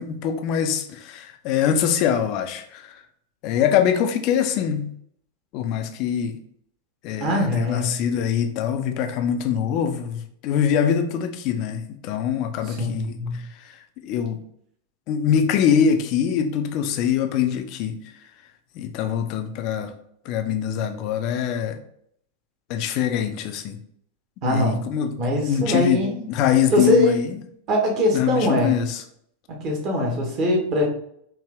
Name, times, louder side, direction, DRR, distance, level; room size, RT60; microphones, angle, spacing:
voice 1, 0.0-3.0 3.4-4.9 5.5-6.4 7.0-13.8 14.0-14.4 15.1-18.0 18.7-19.9 20.2-21.8 22.7-23.8 24.4-25.2 25.5-26.0 26.3-27.4 28.1-29.0, left 8 dB, 40° left, 7 dB, 0.5 m, -23 dB
voice 2, 7.2-7.9 12.7-13.4 24.4-24.8 25.2-26.3 26.7-27.2 27.7-28.8 29.5-30.9, left 1 dB, 40° right, 0 dB, 1.4 m, -22 dB
4.6 x 2.8 x 3.4 m, 0.68 s
figure-of-eight pair, 90°, 0 cm